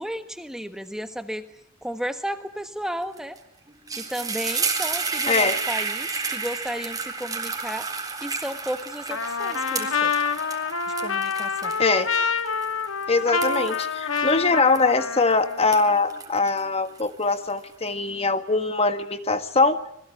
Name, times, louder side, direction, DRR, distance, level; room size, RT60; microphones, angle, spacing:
voice 1, 0.0-1.4 1.8-3.4 3.9-7.9 8.2-10.1 11.0-11.8, equal, 5° right, 8 dB, 1.3 m, -33 dB
sound 1, 3.2-3.4 3.7-15.2 15.6-17.5, right 4 dB, 20° right, 3.8 m, -31 dB
voice 2, 5.3-5.6 11.8-12.1 13.1-19.8, left 3 dB, 30° left, 9 dB, 1.6 m, -22 dB
Trumpet, 9.1-15.7, left 5 dB, 80° left, 1.7 m, -27 dB
27.0 x 21.0 x 9.8 m, 0.77 s
head